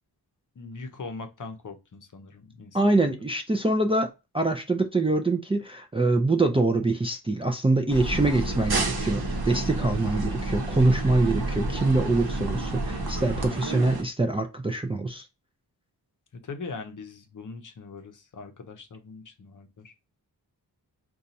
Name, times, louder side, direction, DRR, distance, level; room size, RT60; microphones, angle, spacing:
voice 1, 0.5-3.1 16.3-19.9, left 4 dB, 50° left, 0.7 m, -41 dB
voice 2, 2.7-4.1 4.3-15.3, right 2 dB, 15° right, 0.4 m, -24 dB
sound 1, 7.9-14.0, right 2 dB, 65° right, 0.9 m, -29 dB
2.7 x 2.3 x 3.9 m
wide cardioid pair, 110°, 40 cm